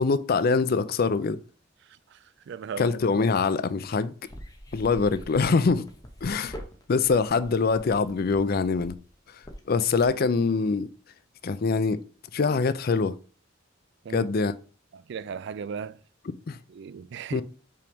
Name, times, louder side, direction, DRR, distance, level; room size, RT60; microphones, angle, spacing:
voice 1, 0.0-1.4 2.8-4.1 4.7-5.8 6.2-6.6 6.9-9.0 9.7-10.9 11.4-12.0 12.3-13.1 14.1-14.5 16.5-16.6 17.3-17.4, left 4 dB, 50° left, 0.4 m, -24 dB
voice 2, 2.1-2.9 14.0-14.3 14.9-16.0 16.7-17.4, right 6 dB, 60° right, 0.3 m, -36 dB
sound 1, 4.3-10.3, equal, 20° left, 1.0 m, -44 dB
5.6 x 3.5 x 5.2 m
head